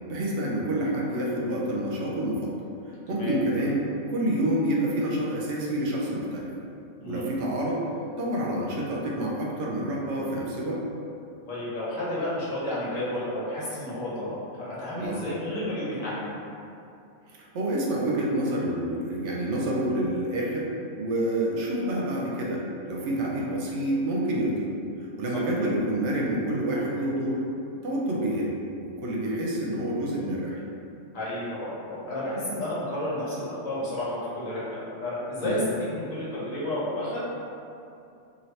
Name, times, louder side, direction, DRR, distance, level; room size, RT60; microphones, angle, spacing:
voice 1, 0.1-2.5 3.1-3.8 4.1-6.5 7.1-7.8 8.2-10.8 15.0-15.2 17.3-20.7 21.0-24.7 25.0-27.4 27.8-28.5 28.8-30.6 35.4-35.6, right 1 dB, 70° right, -3 dB, 0.8 m, -28 dB
voice 2, 11.5-16.4 25.3-25.4 31.1-37.2, left 1 dB, 85° left, -9 dB, 1.4 m, -31 dB
2.8 x 2.7 x 3.1 m, 2.6 s
omnidirectional pair, 1.3 m